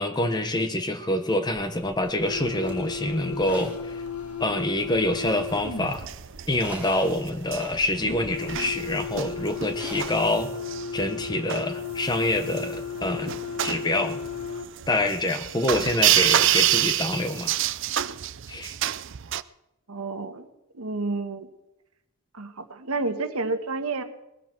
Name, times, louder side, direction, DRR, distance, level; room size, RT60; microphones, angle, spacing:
voice 1, 0.0-4.0 4.4-6.0 6.5-10.5 10.9-13.3 13.6-14.2 14.9-17.6 18.5-18.7, left 1 dB, 20° left, 8 dB, 1.1 m, -26 dB
sound 1, 1.5-10.2, right 2 dB, 5° right, 4.0 m, -45 dB
sound 2, 2.2-6.1 8.0-14.7, left 5 dB, 85° left, 1.5 m, -35 dB
sound 3, 5.2-19.4, right 12 dB, 55° right, 0.5 m, -28 dB
voice 2, 19.9-20.5 20.7-21.5 22.3-24.0, right 3 dB, 80° right, 7 dB, 1.4 m, -30 dB
20.0 x 14.0 x 4.6 m, 0.90 s
head